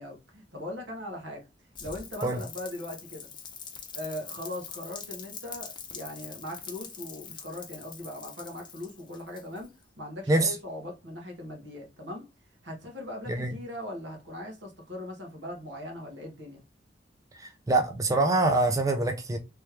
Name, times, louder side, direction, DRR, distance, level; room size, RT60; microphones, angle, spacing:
voice 1, 0.0-1.4 1.8-3.3 3.9-12.2 12.6-16.6, left 1 dB, 80° right, 1.5 m, -40 dB
Rain, 1.7-9.8, left 6 dB, 25° left, 0.7 m, -44 dB
voice 2, 17.4-19.4, right 2 dB, 20° right, 0.5 m, -25 dB
3.3 x 3.2 x 3.3 m
head